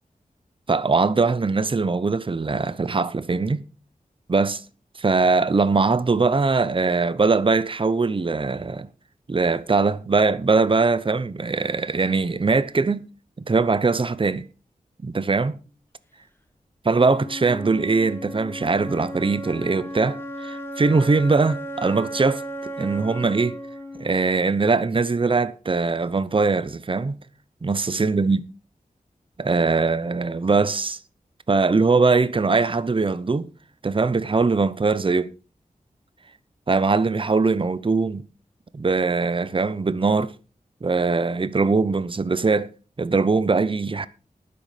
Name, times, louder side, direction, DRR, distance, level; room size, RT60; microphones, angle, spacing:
voice 1, 0.7-3.6 4.3-4.6 5.0-8.9 9.3-13.0 13.5-14.4 15.0-15.6 16.8-22.4 22.8-23.6 24.0-27.2 27.6-28.5 29.4-31.0 31.5-33.5 33.8-35.3 36.7-38.2 38.7-40.3 40.8-42.7 43.0-44.1, right 4 dB, 35° right, 0.8 m, -21 dB
Wind instrument woodwind instrument, 16.9-24.9, equal, 15° left, 2.0 m, -35 dB
12.0 x 9.8 x 5.1 m
wide cardioid pair, 95°, 15 cm